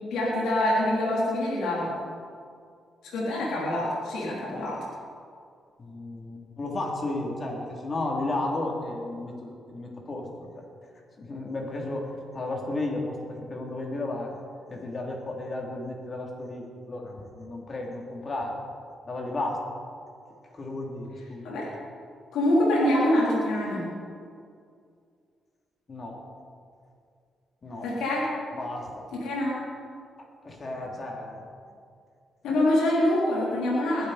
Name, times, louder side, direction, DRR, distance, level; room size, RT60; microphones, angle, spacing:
voice 1, 0.1-1.9 3.0-4.8 21.4-21.7 22.3-23.8 27.8-28.3 29.1-29.6 32.4-34.1, left 1 dB, 90° left, -6 dB, 3.9 m, -25 dB
voice 2, 5.8-10.6 11.2-14.4 14.7-18.6 19.1-19.6 20.5-21.5 25.9-26.2 27.6-27.9 28.5-29.1 30.4-31.4, left 2 dB, 40° left, 0 dB, 3.3 m, -33 dB
21.0 x 11.5 x 4.4 m, 2.3 s
cardioid pair, 80°, 0 cm